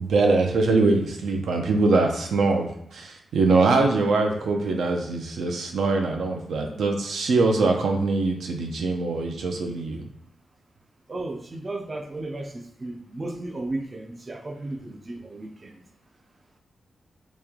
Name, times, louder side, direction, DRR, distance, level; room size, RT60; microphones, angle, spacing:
voice 1, 0.0-10.0, right 3 dB, 85° right, 3 dB, 0.6 m, -23 dB
voice 2, 11.1-15.8, right 2 dB, 25° right, 4 dB, 0.3 m, -34 dB
3.1 x 3.0 x 3.6 m, 0.76 s
wide cardioid pair, 150°, 0 cm